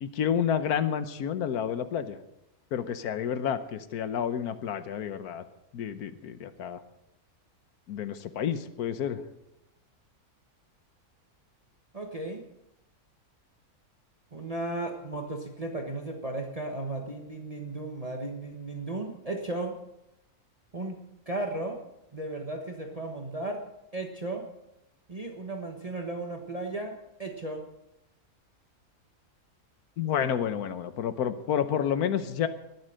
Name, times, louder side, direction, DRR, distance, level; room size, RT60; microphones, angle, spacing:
voice 1, 0.0-2.2 2.7-5.4 5.7-6.8 7.9-9.2 30.0-32.5, left 8 dB, 85° left, 11 dB, 1.4 m, -30 dB
voice 2, 11.9-12.4 14.3-19.8 20.7-21.0 21.3-21.8 22.1-23.6 23.9-24.5 25.1-27.6, right 2 dB, 25° right, 2 dB, 1.4 m, -35 dB
21.0 x 7.9 x 6.4 m, 0.86 s
omnidirectional pair, 1.6 m